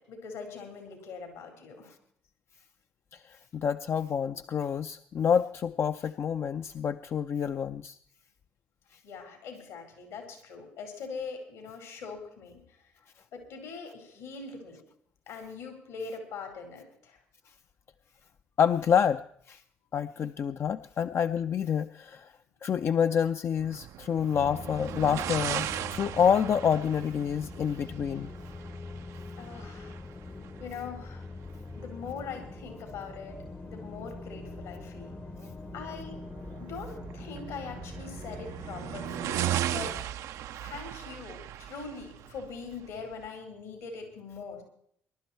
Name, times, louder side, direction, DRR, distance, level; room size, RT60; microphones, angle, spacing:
voice 1, 0.1-1.9 9.0-12.6 13.3-14.8 15.3-17.2 29.4-30.0 30.6-31.2 31.8-33.4 33.6-35.2 35.7-36.1 36.6-40.0 40.6-44.6, left 5 dB, 80° left, 4 dB, 4.4 m, -42 dB
voice 2, 3.1-8.0 18.6-19.2 19.5-19.6 19.9-22.3 22.6-28.3, left 7 dB, 50° left, 9 dB, 0.5 m, -28 dB
sound 1, 23.6-43.3, right 12 dB, 65° right, 0.5 m, -38 dB
sound 2, 24.3-40.0, left 3 dB, 25° left, 0.8 m, -43 dB
21.0 x 11.5 x 4.4 m, 0.65 s
hypercardioid pair, 55°, 6 cm